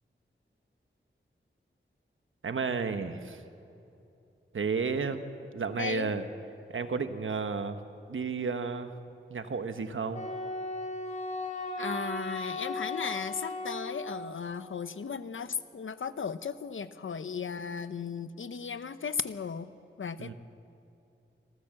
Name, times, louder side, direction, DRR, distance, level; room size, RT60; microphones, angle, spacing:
voice 1, 2.4-3.4 4.5-6.2 6.7-7.8 8.1-8.9 9.3-10.2 20.2-20.3, right 5 dB, 85° right, 9 dB, 1.2 m, -32 dB
voice 2, 5.8-6.1 11.8-19.7 20.0-20.3, left 6 dB, 85° left, 13 dB, 0.8 m, -36 dB
Wind instrument woodwind instrument, 10.1-14.4, left 2 dB, 40° left, 3.3 m, -36 dB
26.5 x 14.5 x 7.6 m, 2.8 s
wide cardioid pair, 80°, 20 cm